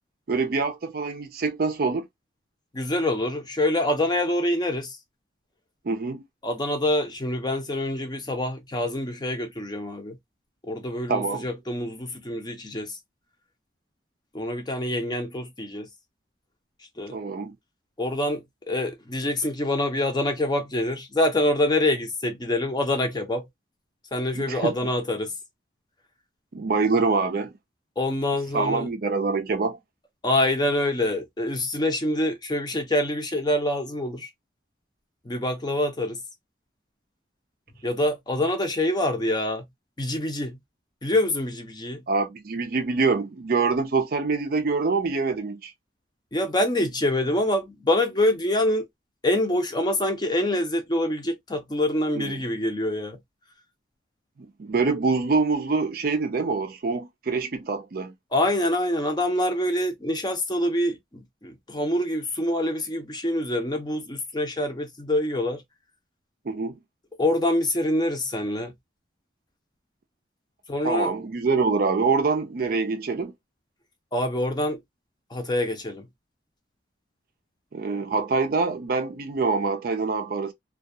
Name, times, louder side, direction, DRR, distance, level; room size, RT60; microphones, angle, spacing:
voice 1, 0.3-2.1 5.8-6.2 11.1-11.5 17.1-17.6 24.3-24.7 26.5-27.5 28.5-29.8 42.1-45.7 52.2-52.4 54.4-58.1 66.4-66.8 70.8-73.3 77.7-80.5, right 4 dB, 50° right, 0.4 m, -25 dB
voice 2, 2.7-5.0 6.4-10.2 10.6-13.0 14.3-15.9 17.0-17.1 18.0-23.5 24.1-25.3 28.0-28.9 30.2-34.3 35.2-36.2 37.8-39.6 40.0-40.6 41.0-42.0 46.3-48.9 49.2-53.2 58.3-65.6 67.2-68.7 70.7-71.1 74.1-74.8 75.3-76.1, left 1 dB, 20° left, 0.6 m, -25 dB
2.3 x 2.3 x 2.6 m
head